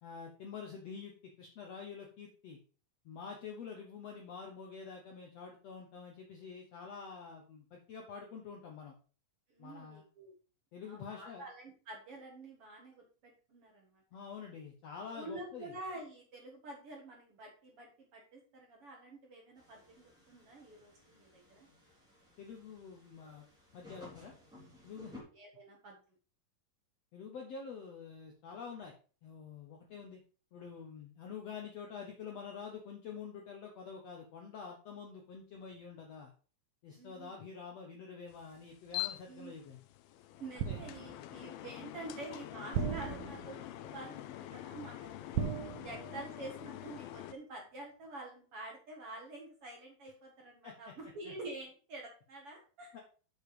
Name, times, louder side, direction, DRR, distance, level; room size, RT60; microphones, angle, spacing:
voice 1, 0.0-2.6 3.0-8.9 9.6-10.0 10.7-11.4 14.1-15.7 22.4-23.4 23.7-24.3 24.8-25.1 27.1-28.9 29.2-30.2 30.5-36.3 36.8-39.8 40.6-40.8 45.9-46.0 50.6-50.7 51.2-51.3 52.9-53.0, left 6 dB, 65° left, 1 dB, 1.6 m, -47 dB
voice 2, 9.5-10.4 10.8-14.0 15.1-21.7 24.9-26.0 36.9-37.3 39.3-39.5 40.4-45.4 45.8-53.0, right 2 dB, 50° right, 0 dB, 1.9 m, -48 dB
sound 1, 19.6-25.2, left 2 dB, ahead, 2.9 m, -57 dB
sound 2, 38.3-47.3, left 15 dB, 85° left, 2.5 m, -45 dB
sound 3, 40.6-41.3 42.7-43.7 45.4-46.5 46.7-47.0, right 7 dB, 75° right, 2.9 m, -37 dB
7.1 x 6.5 x 4.9 m, 0.38 s
omnidirectional pair, 4.3 m